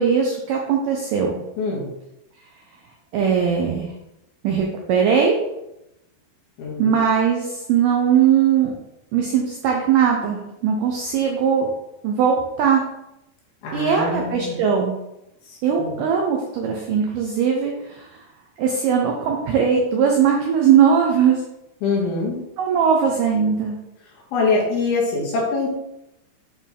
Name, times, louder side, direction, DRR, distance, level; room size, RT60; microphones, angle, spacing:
voice 1, 0.0-1.4 3.1-3.9 4.4-5.3 6.8-8.7 9.1-11.7 12.0-12.8 13.7-14.9 15.6-18.2 18.6-21.4 22.6-23.8, right 7 dB, 90° right, 1 dB, 1.8 m, -19 dB
voice 2, 1.6-1.9 6.6-6.9 13.6-14.6 15.5-15.9 21.8-22.4 24.3-25.7, left 3 dB, 70° left, -3 dB, 3.2 m, -24 dB
8.9 x 3.5 x 3.6 m, 0.88 s
omnidirectional pair, 4.7 m